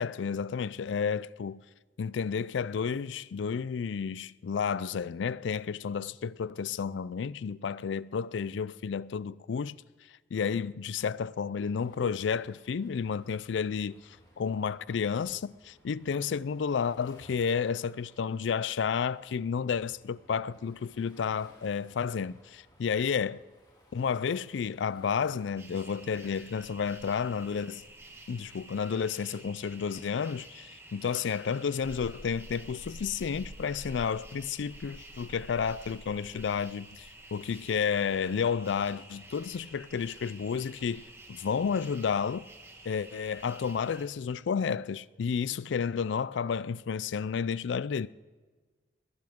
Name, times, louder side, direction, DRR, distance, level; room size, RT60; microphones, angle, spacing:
voice 1, 0.0-1.6 2.0-9.8 10.3-23.4 23.9-27.8 28.3-42.5 42.9-48.1, left 6 dB, 85° left, 0.4 m, -31 dB
Waves surf, 11.8-25.5, left 1 dB, 20° left, 2.6 m, -61 dB
sound 1, 25.6-44.1, right 1 dB, 15° right, 1.5 m, -49 dB
21.0 x 15.5 x 3.6 m
head